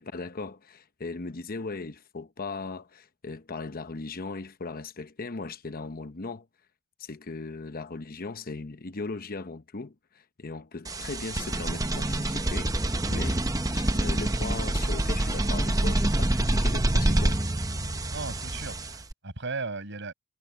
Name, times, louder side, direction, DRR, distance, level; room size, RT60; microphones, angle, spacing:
voice 1, 0.0-6.5 7.0-13.4 13.7-17.4, left 3 dB, 45° left, 0.9 m, -38 dB
sound 1, 10.8-19.1, right 1 dB, 15° right, 0.9 m, -26 dB
voice 2, 18.1-20.1, right 3 dB, 60° right, 5.7 m, -36 dB
head